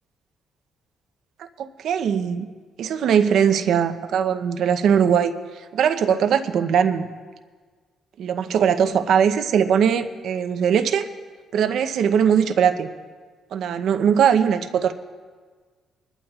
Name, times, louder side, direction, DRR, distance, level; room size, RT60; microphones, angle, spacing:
voice 1, 1.4-2.5 2.8-5.3 5.7-7.1 8.2-11.0 11.5-12.9 13.5-14.9, right 8 dB, 70° right, 8 dB, 0.7 m, -20 dB
24.0 x 12.0 x 2.4 m, 1.5 s
cardioid pair, 90°, 0 cm